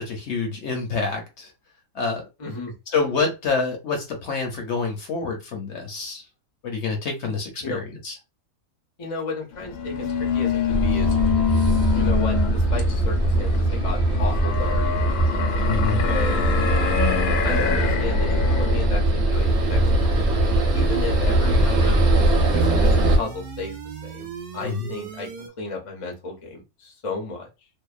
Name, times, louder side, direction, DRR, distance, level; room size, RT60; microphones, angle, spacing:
voice 1, 0.0-1.5 1.9-2.3 2.9-6.2 6.6-8.2 15.6-16.1 24.6-24.9, left 4 dB, 60° left, 0.8 m, -27 dB
voice 2, 2.4-2.7 7.6-7.8 9.0-11.3 11.9-14.9 16.0-16.6 17.4-19.0 19.3-20.2 20.7-22.0 22.5-23.8 24.0-25.3 25.6-27.5, left 3 dB, 45° left, 0.4 m, -33 dB
sound 1, 9.5-18.9, left 7 dB, 85° left, 1.1 m, -26 dB
sound 2, 10.7-23.2, right 1 dB, 55° right, 0.9 m, -21 dB
sound 3, 19.3-25.5, right 2 dB, 90° right, 0.4 m, -37 dB
2.7 x 2.0 x 2.3 m
omnidirectional pair, 1.5 m